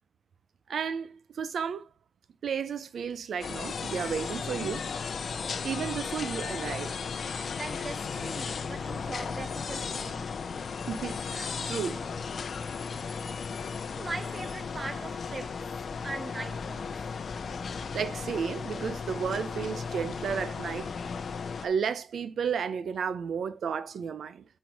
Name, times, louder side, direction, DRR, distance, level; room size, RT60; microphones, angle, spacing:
voice 1, 0.7-1.9 2.4-4.9 5.6-7.0 10.9-12.1 17.9-20.9 21.6-24.4, right 6 dB, 80° right, 0.6 m, -33 dB
sound 1, 3.4-21.7, left 5 dB, 60° left, 0.7 m, -35 dB
voice 2, 7.6-10.3 13.7-15.7 16.0-17.1, right 3 dB, 25° right, 0.5 m, -40 dB
8.1 x 4.5 x 4.7 m
wide cardioid pair, 130°, 0 cm